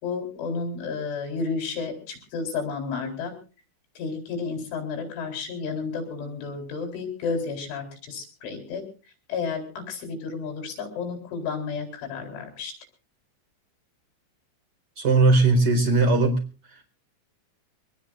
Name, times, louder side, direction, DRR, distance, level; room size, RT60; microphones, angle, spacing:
voice 1, 0.0-3.3 4.0-8.8 9.3-12.7, left 5 dB, 80° left, 5 dB, 6.5 m, -32 dB
voice 2, 15.0-16.4 16.7-16.8, right 3 dB, 25° right, 4 dB, 4.3 m, -19 dB
24.0 x 20.0 x 2.5 m, 0.36 s
omnidirectional pair, 5.4 m